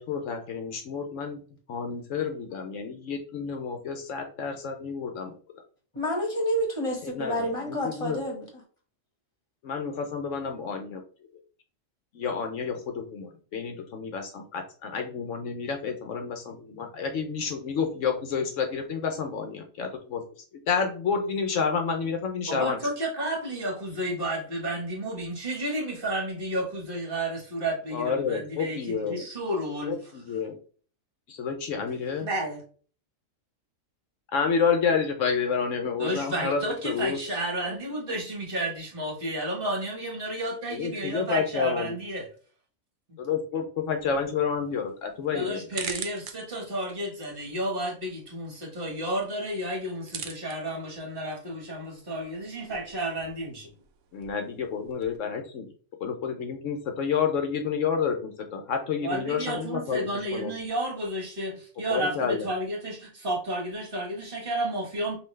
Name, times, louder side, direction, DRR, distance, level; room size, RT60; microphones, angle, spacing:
voice 1, 0.0-1.4 1.7-5.3 7.0-8.2 9.6-11.0 12.1-20.2 20.7-22.8 27.9-29.2 29.9-30.6 31.3-32.3 34.3-37.2 40.7-42.0 43.2-45.6 54.1-55.7 56.0-60.5 61.9-62.5, left 6 dB, 70° left, 4 dB, 1.0 m, -29 dB
voice 2, 5.9-8.5, equal, 25° left, 1 dB, 1.4 m, -29 dB
voice 3, 22.5-30.1 32.2-32.6 36.0-42.3 45.3-53.7 59.0-65.2, right 1 dB, 45° right, -1 dB, 1.6 m, -32 dB
sound 1, 43.9-55.2, right 7 dB, 70° right, 0.9 m, -44 dB
5.4 x 2.7 x 3.1 m, 0.41 s
omnidirectional pair, 1.4 m